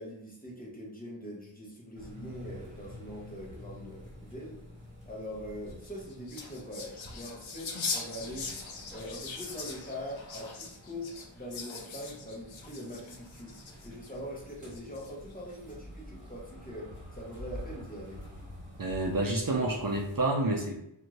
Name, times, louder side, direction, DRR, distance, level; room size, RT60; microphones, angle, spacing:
voice 1, 0.0-4.6 5.1-8.5 8.9-18.2, equal, 20° left, -3 dB, 0.9 m, -43 dB
sound 1, 1.9-20.3, left 1 dB, 15° right, 1.5 m, -49 dB
sound 2, 5.7-14.1 14.7-15.3, left 4 dB, 75° left, 0.6 m, -41 dB
voice 2, 18.8-20.8, right 2 dB, 45° right, 0 dB, 0.6 m, -29 dB
2.6 x 2.4 x 3.0 m, 0.79 s
wide cardioid pair, 50°, 46 cm